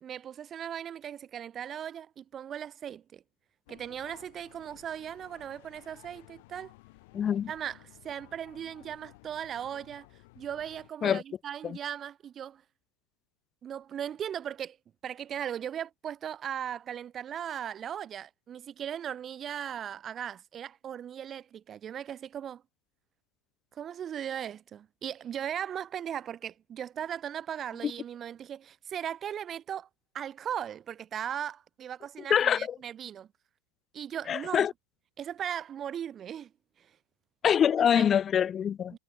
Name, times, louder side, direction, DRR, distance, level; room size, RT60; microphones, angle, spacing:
voice 1, 0.0-3.2 3.7-6.7 7.5-10.1 10.4-12.6 13.6-14.8 15.0-22.6 23.7-29.9 30.1-33.3 33.9-34.7 35.2-36.5 36.8-36.9 37.9-38.1 38.9-39.0, right 9 dB, 25° right, 0.5 m, -38 dB
sound 1, 3.7-10.9, left 23 dB, 50° left, 5.1 m, -56 dB
voice 2, 7.1-7.5 11.0-11.2 11.6-11.8 32.3-32.7 34.3-34.7 37.4-38.9, left 8 dB, 25° left, 0.5 m, -25 dB
figure-of-eight pair, 90°, 0 cm